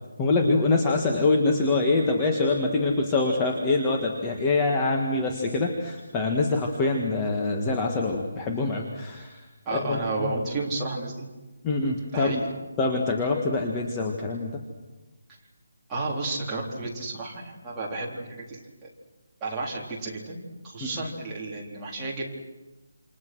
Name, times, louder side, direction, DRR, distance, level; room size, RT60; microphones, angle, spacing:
voice 1, 0.2-9.4 9.7-10.3 11.6-12.4 12.8-14.6 20.8-20.9, left 3 dB, 10° left, 1 dB, 1.7 m, -25 dB
voice 2, 9.7-11.3 12.1-12.4 15.9-18.9 19.4-20.4 20.6-22.3, right 2 dB, 10° right, -5 dB, 4.0 m, -32 dB
28.5 x 28.5 x 6.3 m, 1.1 s
hypercardioid pair, 175°, 0 cm